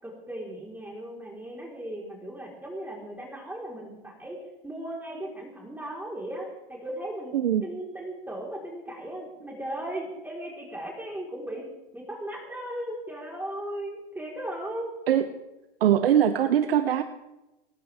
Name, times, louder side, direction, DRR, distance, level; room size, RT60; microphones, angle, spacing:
voice 1, 0.0-4.4 4.6-7.3 7.6-11.7 11.9-14.9, right 1 dB, 5° right, -2 dB, 4.5 m, -37 dB
voice 2, 15.8-17.0, right 10 dB, 80° right, 9 dB, 1.1 m, -21 dB
19.0 x 18.5 x 3.6 m, 1.0 s
hypercardioid pair, 95°, 29 cm